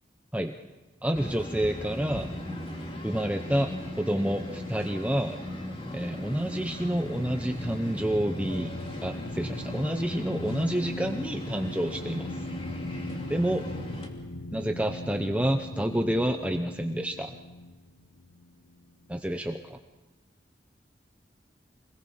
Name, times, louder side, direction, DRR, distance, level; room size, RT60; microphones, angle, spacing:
voice 1, 1.0-2.3 3.0-5.4 5.9-8.7 9.0-12.3 13.3-13.6 14.5-17.4 19.1-19.8, right 1 dB, 10° right, 5 dB, 0.7 m, -29 dB
sound 1, 1.1-14.1, left 1 dB, 30° left, 2.9 m, -38 dB
sound 2, 5.8-19.1, left 1 dB, 75° left, 1.1 m, -40 dB
26.0 x 20.5 x 5.6 m, 1.2 s
head